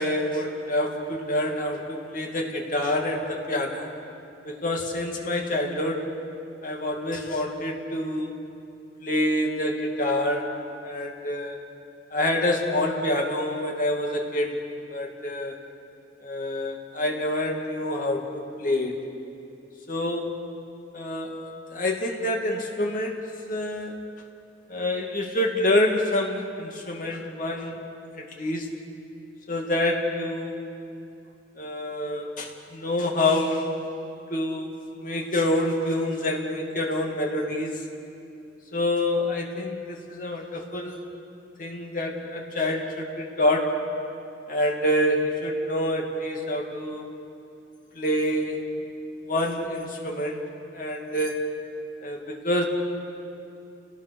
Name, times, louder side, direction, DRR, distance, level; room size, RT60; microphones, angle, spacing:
voice 1, 0.0-3.9 4.5-6.1 6.6-8.3 9.0-10.5 10.8-11.6 12.1-14.6 14.9-15.6 16.2-19.0 19.9-20.4 20.9-21.4 21.7-24.0 24.7-27.8 28.2-28.7 29.5-30.7 31.6-33.7 34.3-34.7 35.0-37.8 38.7-41.1 41.6-43.8 44.5-47.1 47.9-48.6 49.2-50.4 50.7-51.5 52.0-52.7, left 1 dB, 45° left, 1 dB, 2.6 m, -27 dB
30.0 x 18.0 x 6.6 m, 2.7 s
head